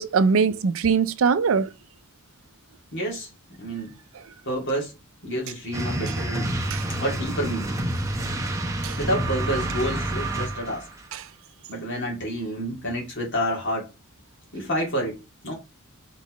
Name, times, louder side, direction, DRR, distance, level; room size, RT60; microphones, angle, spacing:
voice 1, 0.0-1.7 6.7-6.9 8.8-9.0 11.1-11.2, right 5 dB, 70° right, 0.4 m, -22 dB
voice 2, 2.9-3.3 3.6-3.9 4.4-4.9 5.2-6.5 7.0-7.8 9.0-10.9 11.7-13.9 14.5-15.5, equal, 60° left, 2.2 m, -29 dB
sound 1, 5.7-10.9, right 1 dB, 15° right, 0.8 m, -28 dB
4.1 x 4.0 x 3.0 m
head